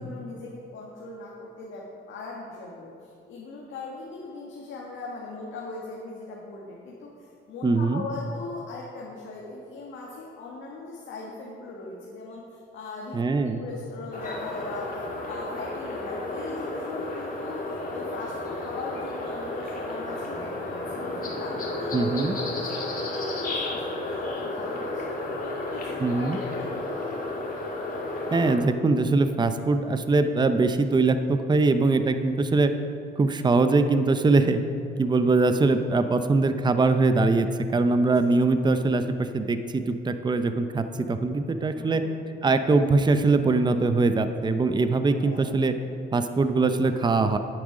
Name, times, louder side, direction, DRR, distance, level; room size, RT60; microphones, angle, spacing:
voice 1, 0.0-23.8 24.1-25.0 25.4-27.1 41.7-42.1 45.2-45.5, left 3 dB, 75° left, -3 dB, 1.6 m, -39 dB
voice 2, 7.6-8.0 13.1-13.6 21.9-22.3 26.0-26.4 28.3-32.7 33.2-34.6 35.0-37.5 37.7-42.0 42.4-45.7 46.1-47.4, right 3 dB, 20° right, 9 dB, 0.6 m, -22 dB
sound 1, 14.1-28.6, left 2 dB, 45° left, 2.2 m, -32 dB
10.0 x 8.9 x 4.9 m, 2.4 s
cardioid pair, 90°, 20 cm